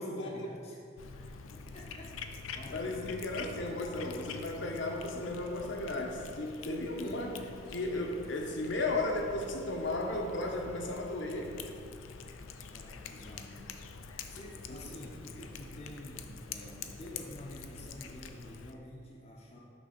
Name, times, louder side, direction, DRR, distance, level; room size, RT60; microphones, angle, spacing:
voice 1, 0.0-3.2 12.7-13.8 14.3-19.6, left 1 dB, 30° left, -3 dB, 0.6 m, -49 dB
Cat, 1.0-18.7, left 5 dB, 80° left, 0.4 m, -46 dB
voice 2, 2.7-7.4 7.7-11.5 14.7-14.8, left 2 dB, 65° left, 2 dB, 0.8 m, -35 dB
6.1 x 3.9 x 5.8 m, 2.3 s
head